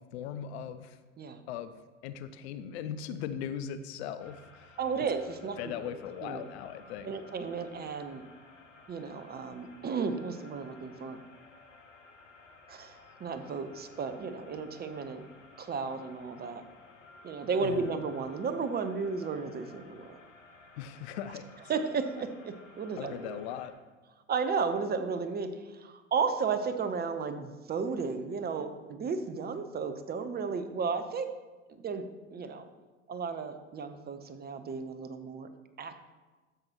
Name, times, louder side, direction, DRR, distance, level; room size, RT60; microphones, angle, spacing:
voice 1, 0.0-1.0 1.5-1.7 2.0-5.0 5.6-7.1 17.6-17.9 20.8-21.5 23.0-23.7, left 9 dB, 60° left, 11 dB, 0.7 m, -39 dB
sound 1, 4.2-23.7, left 3 dB, 85° left, 1.3 m, -55 dB
voice 2, 4.8-5.9 6.2-6.5 7.0-8.2 8.9-11.2 12.7-15.3 15.6-16.6 17.2-20.2 21.7-23.4 24.3-31.3 31.8-32.0 32.3-32.7 33.1-35.5 35.8-36.0, right 5 dB, 25° right, 9 dB, 0.9 m, -34 dB
12.5 x 7.8 x 3.0 m, 1.2 s
hypercardioid pair, 80°, 37 cm